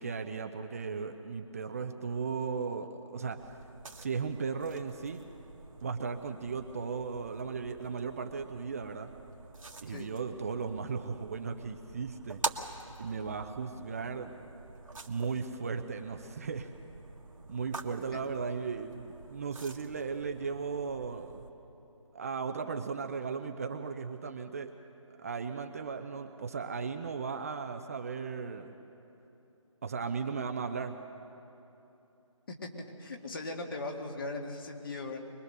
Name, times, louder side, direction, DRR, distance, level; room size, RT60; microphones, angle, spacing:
voice 1, 0.0-3.4 4.0-5.2 5.8-9.1 9.8-12.4 13.0-14.3 15.1-16.7 17.5-21.4 22.1-24.7 25.1-28.7 29.8-30.9, right 5 dB, 25° right, 6 dB, 0.6 m, -36 dB
sound 1, 3.4-21.5, right 3 dB, 75° right, 1.7 m, -46 dB
voice 2, 33.0-35.2, left 2 dB, 40° left, 2 dB, 2.2 m, -38 dB
23.5 x 21.5 x 6.7 m, 3.0 s
figure-of-eight pair, 160°, 17 cm